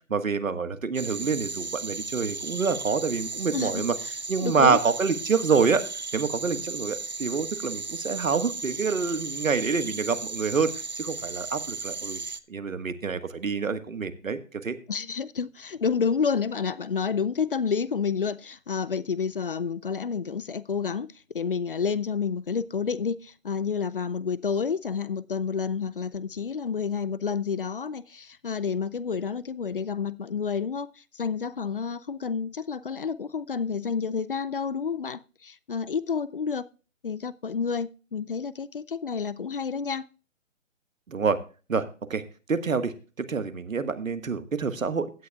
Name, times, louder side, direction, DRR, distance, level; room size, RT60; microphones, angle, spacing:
voice 1, 0.1-3.9 4.3-5.8 6.1-12.2 12.5-14.8 41.1-41.4 41.7-41.8 42.1-42.2 42.5-45.1, right 5 dB, 80° right, 1.5 m, -27 dB
sound 1, 0.9-12.4, right 4 dB, 35° right, 0.4 m, -35 dB
voice 2, 3.5-4.1 4.4-4.8 14.9-21.1 21.3-36.7 37.0-40.1, left 6 dB, 45° left, 0.5 m, -29 dB
16.0 x 9.6 x 2.3 m
figure-of-eight pair, 155°, 39 cm